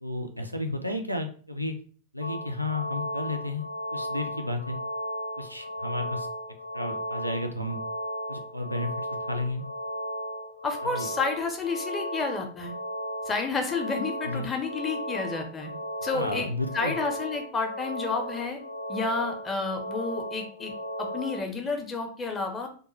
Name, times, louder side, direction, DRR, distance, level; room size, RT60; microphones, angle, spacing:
voice 1, 0.0-1.7 2.1-3.6 3.9-4.8 5.4-6.3 6.7-7.8 8.3-9.6 10.8-11.1 14.2-14.5 16.1-16.9, left 2 dB, 90° right, 4 dB, 0.3 m, -32 dB
sound 1, 2.2-21.4, equal, 65° left, 0.6 m, -35 dB
voice 2, 10.6-12.7 13.3-15.7 16.0-16.5 16.7-18.6 18.9-20.7 21.0-22.7, left 4 dB, 20° left, 4 dB, 0.5 m, -30 dB
2.2 x 2.1 x 3.0 m, 0.42 s
figure-of-eight pair, 90°, 0 cm